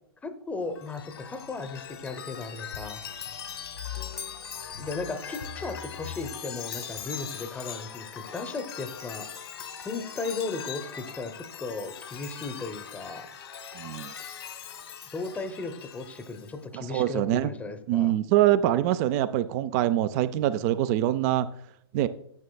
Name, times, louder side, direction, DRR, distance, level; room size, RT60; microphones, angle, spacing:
voice 1, 0.2-3.0 4.8-9.3 9.8-13.3 15.1-18.2, left 3 dB, 10° left, 8 dB, 0.7 m, -36 dB
Chime, 0.7-16.6, left 8 dB, 75° left, 1.1 m, -40 dB
voice 2, 13.8-14.1 16.7-17.5 17.9-21.5 21.9-22.1, right 13 dB, 40° right, 14 dB, 0.3 m, -24 dB
9.6 x 8.3 x 2.2 m, 0.72 s
hypercardioid pair, 115°, 13 cm